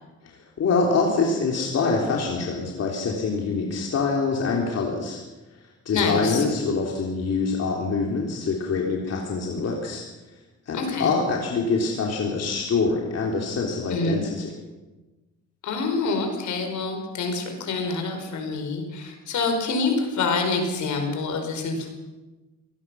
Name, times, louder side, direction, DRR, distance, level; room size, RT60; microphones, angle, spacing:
voice 1, 0.2-5.2 5.9-10.0 10.7-14.5, left 4 dB, 55° left, 0 dB, 3.5 m, -25 dB
voice 2, 5.9-6.4 10.7-11.1 13.9-14.2 15.6-21.9, left 4 dB, 70° left, 5 dB, 5.1 m, -26 dB
23.5 x 18.5 x 6.3 m, 1.1 s
cardioid pair, 90°, 30 cm